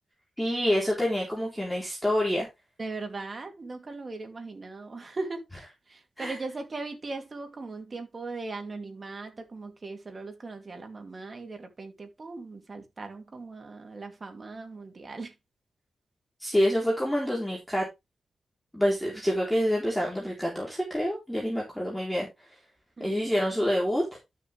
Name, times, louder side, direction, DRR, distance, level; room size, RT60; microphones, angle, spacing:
voice 1, 0.4-2.5 6.2-6.4 16.4-17.9 18.7-22.3 23.0-24.0, equal, 5° left, 3.9 m, -27 dB
voice 2, 2.8-5.4 5.9-15.3 23.0-23.3, right 3 dB, 40° right, 2.7 m, -39 dB
12.0 x 6.8 x 3.4 m
wide cardioid pair, 95°, 0 cm